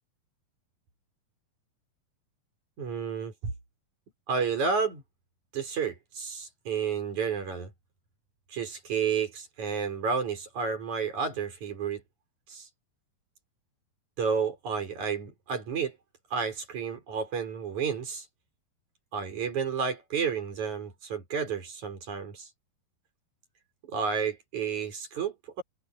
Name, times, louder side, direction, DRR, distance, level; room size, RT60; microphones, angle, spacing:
voice 1, 2.8-3.5 4.3-5.0 5.5-7.7 8.5-12.0 12.5-12.7 14.2-16.0 16.3-18.3 19.1-22.5 23.8-25.6, right 6 dB, 50° right, 6.0 m, -31 dB
omnidirectional pair, 4.4 m